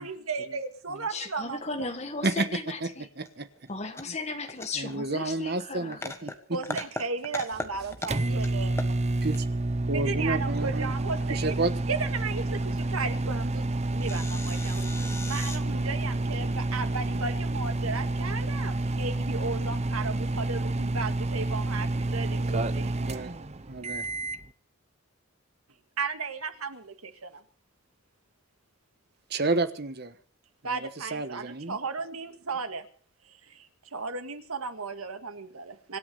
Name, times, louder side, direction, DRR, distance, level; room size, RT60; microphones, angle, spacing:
voice 1, 0.0-1.6 6.5-8.8 9.9-11.6 11.9-13.7 13.9-14.8 15.3-22.9 26.0-27.3 30.6-32.8 33.9-36.0, right 4 dB, 90° right, 8 dB, 1.9 m, -35 dB
voice 2, 1.1-3.1 3.7-6.0, left 3 dB, 30° left, 6 dB, 1.8 m, -36 dB
sound 1, 3.2-3.3 3.6-4.9 5.2-5.3 5.7-6.3 6.6-7.7 7.9-8.5 8.7-9.4 11.2-11.5 12.7-12.8 13.0-13.1 13.5-13.6 13.9-15.6, left 2 dB, 10° left, 1.4 m, -38 dB
voice 3, 4.8-6.6 9.2-9.5 9.9-10.9 11.3-11.7 14.8-15.1 23.0-23.3 23.7-24.1 29.3-30.1 30.6-31.8, right 2 dB, 50° right, 11 dB, 1.2 m, -31 dB
sound 2, 7.5-24.5, right 2 dB, 30° right, 0.7 m, -29 dB
25.5 x 9.8 x 5.5 m, 0.44 s
head